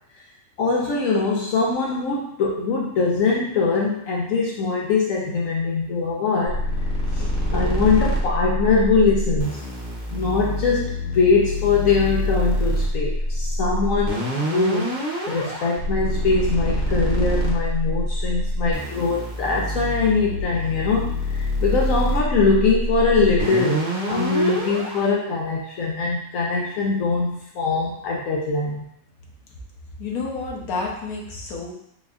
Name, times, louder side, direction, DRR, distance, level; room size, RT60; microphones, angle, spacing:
voice 1, 0.6-6.6 7.1-9.6 10.1-14.9 15.3-28.9, left 4 dB, 70° left, -3 dB, 1.0 m, -22 dB
sound 1, 6.5-25.0, equal, 40° right, 0.9 m, -25 dB
voice 2, 30.0-31.7, left 4 dB, 90° left, -1 dB, 1.3 m, -29 dB
4.1 x 3.6 x 2.4 m, 0.73 s
omnidirectional pair, 1.5 m